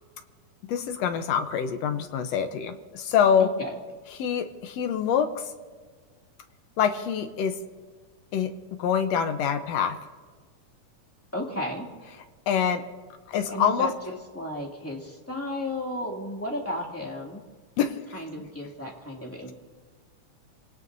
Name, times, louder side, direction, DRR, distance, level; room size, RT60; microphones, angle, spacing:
voice 1, 0.7-3.5 4.2-5.3 6.8-7.6 8.3-8.5 8.8-10.0 12.5-12.8 13.3-13.9 17.8-17.9, left 8 dB, 70° left, 8 dB, 1.8 m, -25 dB
voice 2, 3.4-3.8 11.3-11.9 13.5-17.4 18.1-19.5, left 1 dB, 5° left, -2 dB, 2.0 m, -34 dB
27.0 x 18.0 x 2.7 m, 1.5 s
omnidirectional pair, 3.6 m